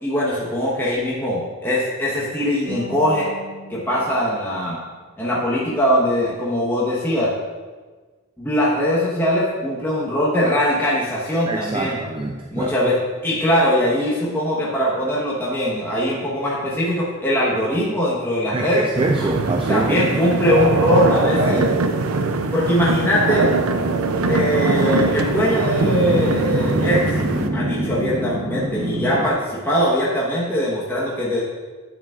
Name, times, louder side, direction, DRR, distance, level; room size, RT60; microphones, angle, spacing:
voice 1, 0.0-3.3 3.7-4.8 5.2-7.3 8.4-12.0 12.5-13.0 13.2-18.9 19.7-21.6 22.5-23.5 23.9-24.0 24.3-27.1 27.5-31.4, left 1 dB, 10° left, -7 dB, 1.1 m, -21 dB
sound 1, 2.7-5.8, left 1 dB, 75° left, 2.0 m, -40 dB
voice 2, 11.4-12.7 18.5-20.2 21.3-21.8, right 2 dB, 25° right, 2 dB, 0.4 m, -24 dB
sound 2, 19.0-27.5, right 3 dB, 85° right, 0.5 m, -22 dB
sound 3, 24.0-24.9 25.8-29.3, right 1 dB, 70° right, 1.1 m, -25 dB
9.3 x 7.2 x 2.4 m, 1.4 s
head